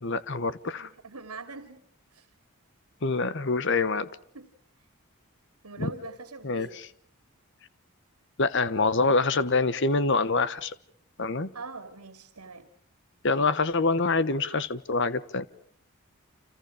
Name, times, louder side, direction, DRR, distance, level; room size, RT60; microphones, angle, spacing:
voice 1, 0.0-0.9 3.0-4.1 5.8-5.9 6.4-6.7 8.4-10.7 11.2-11.5 13.2-15.5, left 3 dB, 55° left, 15 dB, 1.1 m, -25 dB
voice 2, 0.8-1.8 2.1-2.3 4.3-4.5 5.6-6.8 9.0-9.5 11.5-12.7, right 3 dB, 85° right, 9 dB, 2.7 m, -43 dB
30.0 x 27.5 x 5.0 m, 0.62 s
head